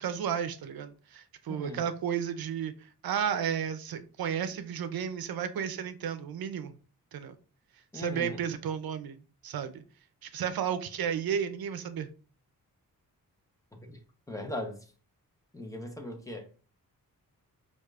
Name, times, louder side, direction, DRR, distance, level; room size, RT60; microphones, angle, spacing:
voice 1, 0.0-2.7 3.0-6.7 7.1-7.3 7.9-9.8 10.2-12.1, right 8 dB, 75° right, 0.6 m, -33 dB
voice 2, 1.5-1.9 7.9-8.4 13.8-14.0 14.3-14.8 15.5-16.5, left 1 dB, 10° left, 0.8 m, -39 dB
4.8 x 2.5 x 2.4 m
cardioid pair, 85°, 36 cm